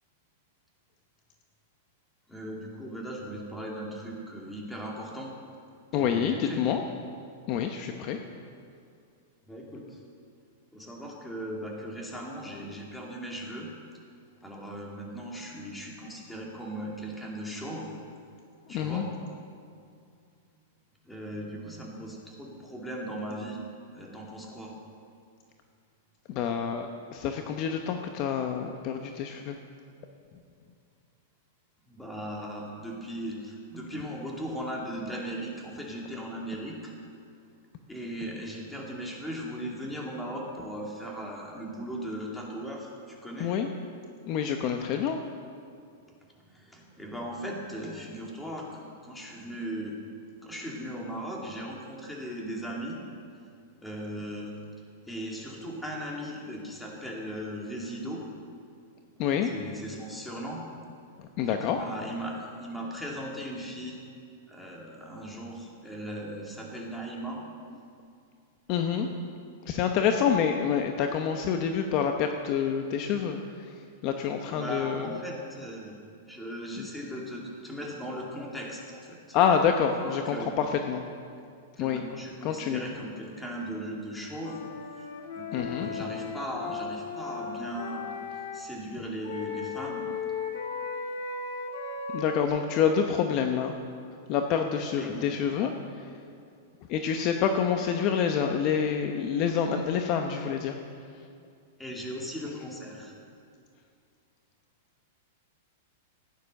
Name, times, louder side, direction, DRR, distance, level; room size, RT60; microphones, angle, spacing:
voice 1, 2.3-5.3 6.0-6.6 9.5-10.0 10.7-13.7 14.4-18.0 18.7-19.1 21.1-23.6 23.9-24.7 31.9-36.9 37.9-43.5 46.5-50.0 50.4-53.0 53.8-54.6 55.1-58.2 59.4-60.6 61.4-64.0 64.5-67.4 74.5-75.9 76.3-79.4 79.9-80.6 81.8-84.7 85.0-85.1 85.3-88.2 88.5-90.1 95.0-95.3 101.8-103.1, equal, 5° left, -2 dB, 2.4 m, -38 dB
voice 2, 5.9-6.8 7.5-8.2 18.7-19.0 26.3-26.9 27.1-29.6 43.4-43.7 44.3-45.2 59.2-59.5 61.4-61.8 68.7-69.1 69.7-73.4 74.0-75.1 76.8-76.9 79.3-81.0 81.8-82.0 82.4-82.8 85.5-85.9 92.1-93.7 94.3-95.7 96.9-100.7, left 7 dB, 40° left, 5 dB, 0.8 m, -27 dB
Wind instrument woodwind instrument, 84.4-88.6 89.2-92.5, left 5 dB, 65° left, 1.9 m, -36 dB
15.0 x 9.6 x 6.5 m, 2.3 s
supercardioid pair, 145°, 0 cm